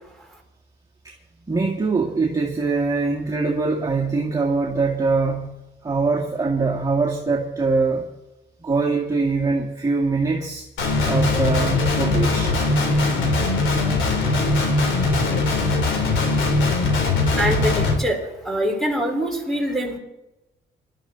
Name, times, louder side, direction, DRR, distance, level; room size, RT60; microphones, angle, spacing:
voice 1, 1.5-5.6 5.8-8.1 8.6-12.5, right 4 dB, 15° right, -3 dB, 2.1 m, -23 dB
Guitar, 10.8-17.9, left 3 dB, 75° left, 3.5 m, -20 dB
voice 2, 17.4-18.2 18.4-20.0, equal, ahead, 1 dB, 4.6 m, -24 dB
19.5 x 12.5 x 4.1 m, 0.97 s
cardioid pair, 90°, 20 cm